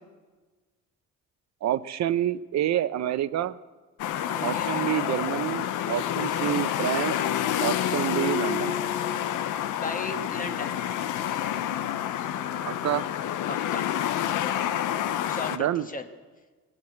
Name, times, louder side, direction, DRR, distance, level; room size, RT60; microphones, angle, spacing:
voice 1, 1.6-3.6 4.4-7.2 7.6-8.8 12.7-13.0 15.5-15.9, right 12 dB, 65° right, 15 dB, 0.6 m, -28 dB
sound 1, 4.0-15.6, left 10 dB, 85° left, 0.7 m, -28 dB
voice 2, 4.3-4.8 9.8-10.7 13.5-13.9 15.3-16.1, left 3 dB, 25° left, 6 dB, 1.3 m, -35 dB
19.0 x 7.4 x 7.9 m, 1.3 s
cardioid pair, 90°, 30 cm